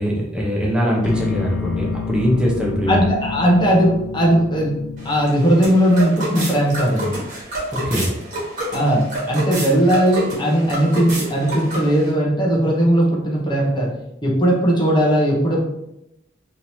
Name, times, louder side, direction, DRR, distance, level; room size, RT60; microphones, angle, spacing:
voice 1, 0.0-3.0 7.7-8.1, equal, 5° right, -4 dB, 0.8 m, -21 dB
sound 1, 1.0-7.1, left 6 dB, 85° left, 0.3 m, -31 dB
voice 2, 2.9-4.7 5.0-7.1 8.7-13.9 14.2-15.6, equal, 25° left, -3 dB, 0.9 m, -18 dB
sound 2, 5.0-12.1, right 1 dB, 40° right, 1.4 m, -29 dB
3.6 x 3.0 x 2.8 m, 0.82 s
head